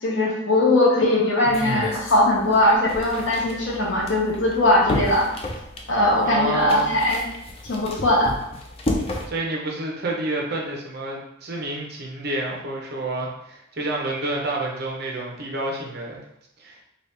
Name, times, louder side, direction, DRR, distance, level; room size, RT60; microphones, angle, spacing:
voice 1, 0.0-5.3 5.9-7.3 7.6-8.3, left 1 dB, 65° left, -4 dB, 1.0 m, -20 dB
sound 1, 1.4-9.3, left 1 dB, 30° left, 0.4 m, -31 dB
voice 2, 6.2-6.9 9.3-16.2 16.6-16.8, right 2 dB, 50° right, -1 dB, 0.7 m, -29 dB
3.1 x 2.7 x 3.3 m, 0.79 s
head